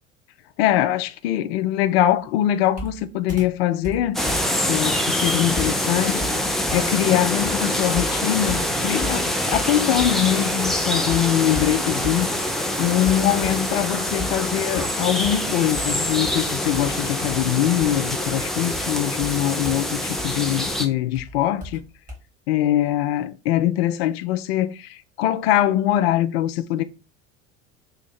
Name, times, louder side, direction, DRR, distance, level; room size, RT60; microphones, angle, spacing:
voice 1, 0.6-4.2 4.7-6.3 6.7-21.8 22.5-26.8, left 12 dB, 55° left, 0.5 m, -23 dB
Computer keyboard, 2.7-10.3 10.7-12.6 13.0-13.8 14.2-22.2, equal, 20° right, 1.9 m, -37 dB
sound 1, 4.1-20.9, left 1 dB, ahead, 0.5 m, -25 dB
3.2 x 2.8 x 4.4 m
figure-of-eight pair, 70°, 37 cm